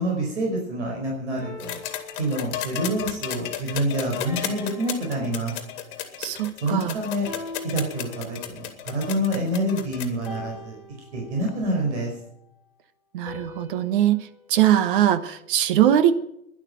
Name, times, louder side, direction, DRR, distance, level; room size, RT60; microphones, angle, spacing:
voice 1, 0.0-1.8 2.1-5.5 6.6-7.3 7.6-10.8 11.1-12.1, right 1 dB, 55° right, 0 dB, 5.2 m, -27 dB
sound 1, 1.4-2.9 4.3-6.1 7.3-8.7 10.3-11.7 13.3-15.5, left 2 dB, 5° right, 4.6 m, -43 dB
sound 2, 1.6-10.3 11.5-11.6, left 11 dB, 35° left, 2.2 m, -34 dB
voice 2, 6.2-6.9 13.1-14.2 14.5-16.1, right 11 dB, 40° right, 12 dB, 1.2 m, -21 dB
12.0 x 11.0 x 9.1 m, 0.77 s
figure-of-eight pair, 110°, 42 cm